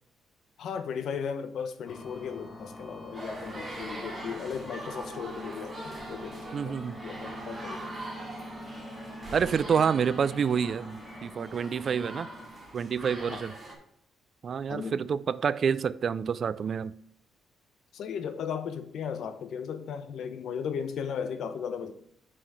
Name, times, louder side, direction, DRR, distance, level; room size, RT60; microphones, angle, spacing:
voice 1, 0.6-7.9 13.2-13.4 14.7-15.1 17.9-21.9, left 7 dB, 70° left, 0.8 m, -36 dB
sound 1, 1.9-12.5, equal, 25° left, 1.1 m, -45 dB
sound 2, 3.1-13.7, right 1 dB, 20° right, 2.4 m, -42 dB
voice 2, 6.5-7.0 9.3-12.3 12.7-13.6 14.4-17.0, right 7 dB, 50° right, 0.3 m, -28 dB
5.8 x 4.9 x 5.4 m
cardioid pair, 90°, 0 cm